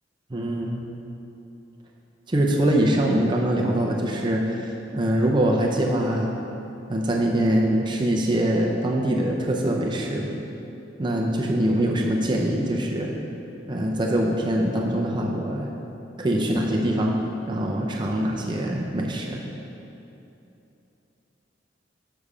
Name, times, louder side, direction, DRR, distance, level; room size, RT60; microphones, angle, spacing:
voice 1, 0.3-0.8 2.3-6.3 6.9-10.3 11.0-13.1 13.7-15.7 16.2-17.2 17.5-19.4, right 1 dB, 25° right, -1 dB, 0.6 m, -23 dB
6.9 x 6.7 x 4.9 m, 2.9 s
head